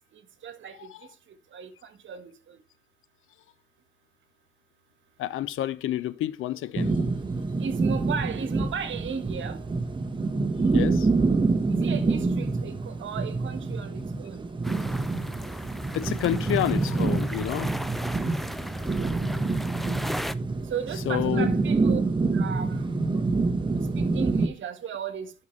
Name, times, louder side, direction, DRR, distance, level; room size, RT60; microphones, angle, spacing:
voice 1, 0.1-0.8 1.5-2.6 7.6-9.6 11.7-14.5 18.9-19.2 20.7-22.0 22.3-22.9 23.7-25.3, right 6 dB, 70° right, 1.4 m, -35 dB
voice 2, 5.2-7.0 10.7-11.1 14.8-14.9 15.9-17.7 21.1-21.5, left 12 dB, 80° left, 0.6 m, -29 dB
sound 1, 6.7-24.5, right 3 dB, 25° right, 1.2 m, -27 dB
sound 2, 14.6-20.3, equal, ahead, 0.5 m, -36 dB
11.0 x 5.8 x 3.2 m
cardioid pair, 85°, 21 cm